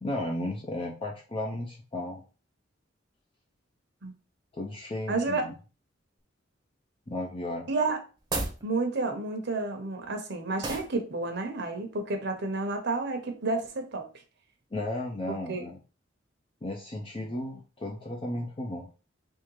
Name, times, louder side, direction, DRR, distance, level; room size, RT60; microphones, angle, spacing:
voice 1, 0.0-2.2 4.5-5.5 7.1-7.7 14.7-15.8 16.6-18.9, left 1 dB, 30° left, -1 dB, 0.6 m, -34 dB
voice 2, 5.1-5.4 7.7-8.0 8.6-14.1 15.3-15.6, right 3 dB, 65° right, 5 dB, 0.9 m, -30 dB
sound 1, 8.2-8.6 10.6-11.0, right 2 dB, 20° right, 0.8 m, -32 dB
3.6 x 3.2 x 3.1 m, 0.35 s
head